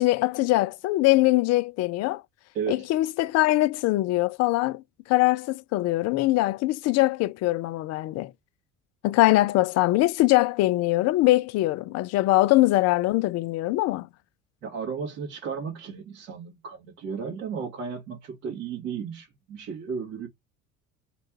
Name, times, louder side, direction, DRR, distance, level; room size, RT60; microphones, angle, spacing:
voice 1, 0.0-2.2 2.7-8.3 9.0-14.1, left 18 dB, 40° left, 0.4 m, -22 dB
voice 2, 2.5-2.9 14.6-20.3, right 6 dB, 80° right, 2.1 m, -34 dB
5.1 x 2.3 x 4.5 m
figure-of-eight pair, 60°, 42 cm